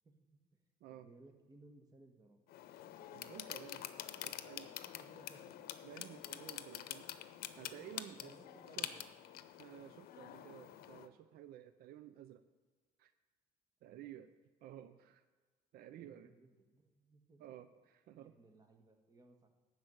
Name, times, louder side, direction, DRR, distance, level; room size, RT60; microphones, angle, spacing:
voice 1, 0.0-0.4 0.9-2.4 4.9-5.6 8.1-9.1 13.8-14.1 15.8-17.4 18.2-19.5, right 2 dB, 25° right, 3 dB, 1.7 m, -63 dB
sound 1, 2.5-11.1, left 12 dB, 75° left, 0.7 m, -47 dB
voice 2, 3.1-4.8 5.8-8.3 8.6-8.9 9.6-12.4 13.0-13.1 13.8-14.3 14.6-15.2 15.7-16.3 17.4-18.3, right 11 dB, 75° right, 11 dB, 0.6 m, -54 dB
12.0 x 4.8 x 8.0 m, 1.4 s
cardioid pair, 105°, 16 cm